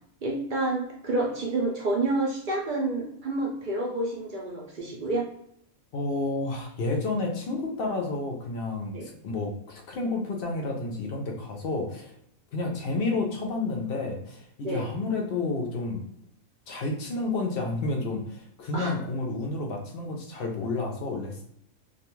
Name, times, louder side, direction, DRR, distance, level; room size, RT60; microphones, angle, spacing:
voice 1, 0.2-5.3 8.9-9.1 14.6-14.9 18.7-18.9, right 2 dB, 55° right, -2 dB, 0.6 m, -29 dB
voice 2, 5.9-12.1 12.5-16.0 16.7-21.4, left 3 dB, 60° left, 2 dB, 0.6 m, -30 dB
2.3 x 2.3 x 3.0 m, 0.73 s
omnidirectional pair, 1.4 m